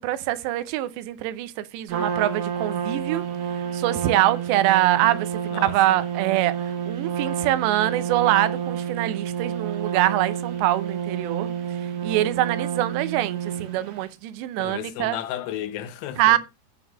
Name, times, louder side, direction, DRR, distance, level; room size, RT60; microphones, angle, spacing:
voice 1, 0.0-3.2 3.7-5.3 5.6-6.6 6.9-11.5 12.0-15.2 16.2-16.4, right 14 dB, 85° right, 2.9 m, -24 dB
Trumpet, 1.9-14.0, right 8 dB, 60° right, 2.6 m, -29 dB
voice 2, 5.5-6.0 14.6-16.4, left 11 dB, 80° left, 3.1 m, -33 dB
9.8 x 4.0 x 6.3 m
omnidirectional pair, 4.9 m